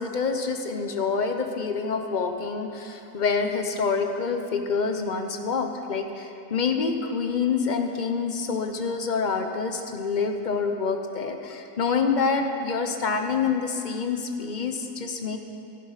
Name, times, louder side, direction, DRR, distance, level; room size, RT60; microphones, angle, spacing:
voice 1, 0.0-15.4, left 5 dB, 40° left, 5 dB, 0.7 m, -27 dB
14.0 x 11.0 x 5.7 m, 2.8 s
omnidirectional pair, 1.7 m